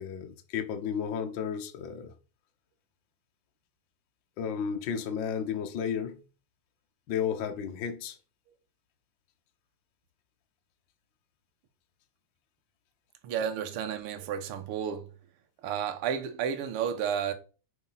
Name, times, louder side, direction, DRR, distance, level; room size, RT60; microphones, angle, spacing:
voice 1, 0.0-2.1 4.4-6.2 7.1-8.2, left 7 dB, 80° left, 1.0 m, -33 dB
voice 2, 13.2-15.1 15.6-17.3, right 8 dB, 60° right, 1.6 m, -32 dB
9.5 x 4.7 x 5.8 m
omnidirectional pair, 3.9 m